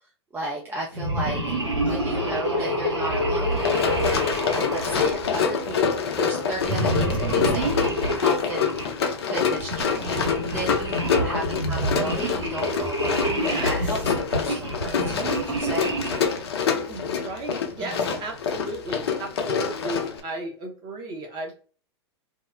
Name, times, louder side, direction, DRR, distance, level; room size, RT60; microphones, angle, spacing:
voice 1, 0.3-8.8 9.3-15.9 17.8-18.1, right 2 dB, 15° right, -3 dB, 0.5 m, -34 dB
sound 1, 0.9-5.8 6.6-8.9 9.6-16.4, equal, 85° right, 1.3 m, -27 dB
voice 2, 1.8-2.7 13.2-14.0 16.9-21.6, right 2 dB, 30° right, 1 dB, 0.9 m, -35 dB
Run, 3.5-20.2, left 6 dB, 65° left, 0.5 m, -26 dB
2.8 x 2.0 x 2.4 m, 0.39 s
figure-of-eight pair, 95°, 14 cm